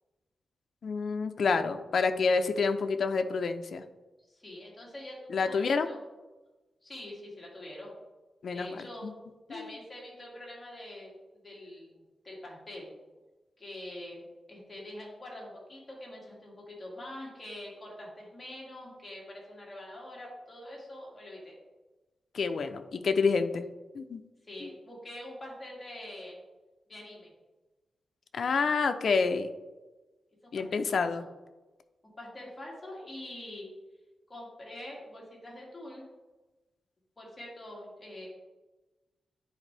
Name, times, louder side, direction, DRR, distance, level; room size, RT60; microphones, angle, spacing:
voice 1, 0.8-3.8 5.3-5.9 8.4-9.1 9.5-9.7 22.3-23.7 23.9-24.2 24.6-24.7 28.3-29.5 30.5-31.2, left 4 dB, 60° left, 8 dB, 0.5 m, -28 dB
voice 2, 4.3-6.0 6.8-7.9 8.5-9.1 9.5-11.2 11.4-12.9 13.6-21.5 24.5-26.4 26.9-27.3 30.4-31.1 32.1-33.7 34.3-36.1 37.2-38.3, left 1 dB, 15° left, -4 dB, 2.1 m, -45 dB
10.0 x 4.4 x 3.3 m, 1.2 s
wide cardioid pair, 145°, 0 cm